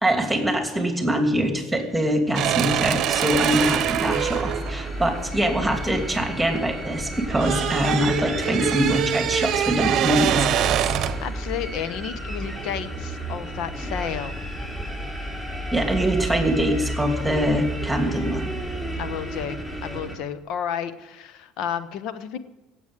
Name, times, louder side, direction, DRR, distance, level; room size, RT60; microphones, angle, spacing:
voice 1, 0.0-10.6 15.7-18.5, equal, 5° right, 4 dB, 2.8 m, -23 dB
sound 1, 2.3-6.6 6.9-11.3, right 10 dB, 50° right, 0.9 m, -24 dB
sound 2, 3.3-20.1, right 1 dB, 15° left, 5.0 m, -32 dB
voice 2, 11.0-14.3 19.0-22.4, left 8 dB, 60° left, 13 dB, 1.1 m, -32 dB
17.0 x 8.3 x 9.2 m, 1.1 s
hypercardioid pair, 65°, 0 cm